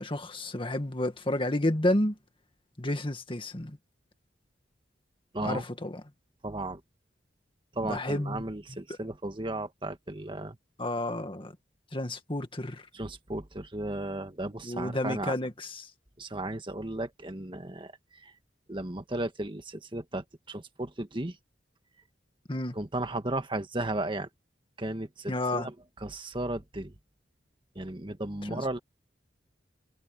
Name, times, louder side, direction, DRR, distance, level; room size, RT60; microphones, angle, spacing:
voice 1, 0.0-2.2 2.8-3.8 5.4-6.0 7.8-8.4 10.8-11.6 11.9-12.8 14.6-15.9 22.5-22.8 25.3-25.7 28.4-28.7, left 1 dB, 30° left, 2.0 m, -31 dB
voice 2, 5.3-5.6 6.4-6.8 7.7-10.6 12.9-15.3 16.2-17.9 18.2-18.3 18.7-21.4 22.7-24.3 24.8-25.7 26.0-26.9 27.7-28.8, right 2 dB, 30° right, 1.6 m, -35 dB
head